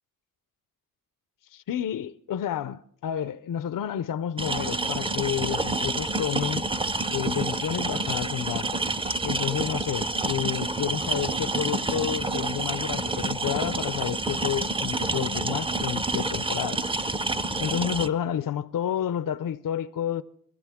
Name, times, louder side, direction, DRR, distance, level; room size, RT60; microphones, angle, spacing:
voice 1, 1.5-6.7 7.1-8.9 9.2-16.8 17.6-20.2, left 10 dB, 65° left, 0.5 m, -30 dB
sound 1, 4.4-18.1, right 2 dB, 15° right, 0.5 m, -28 dB
24.0 x 14.5 x 3.5 m
wide cardioid pair, 90°, 35 cm